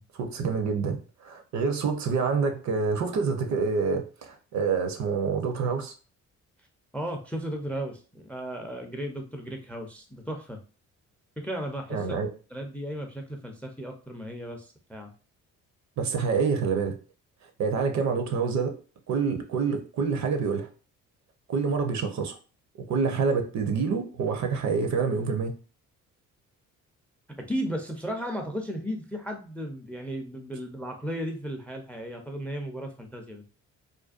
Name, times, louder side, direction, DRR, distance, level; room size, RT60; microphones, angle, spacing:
voice 1, 0.1-5.9 11.9-12.3 16.0-17.0 17.6-18.7 19.1-20.7 21.5-22.4 22.8-25.5, right 5 dB, 55° right, 0.6 m, -27 dB
voice 2, 6.9-10.6 11.4-12.2 12.5-15.1 27.4-33.4, equal, 5° left, 0.4 m, -35 dB
2.5 x 2.2 x 2.4 m
supercardioid pair, 65°, 34 cm